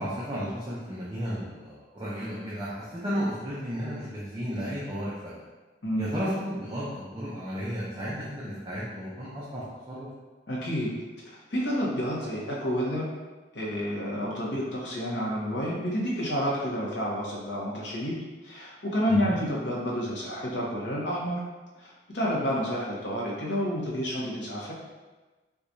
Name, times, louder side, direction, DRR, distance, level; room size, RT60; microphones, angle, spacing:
voice 1, 0.0-5.4 6.0-10.1 19.1-19.3, equal, 25° right, -8 dB, 0.5 m, -33 dB
voice 2, 10.5-10.9 11.5-13.1 13.5-21.5 21.8-24.7, equal, 70° left, -4 dB, 0.9 m, -29 dB
4.6 x 2.3 x 2.6 m, 1.2 s
head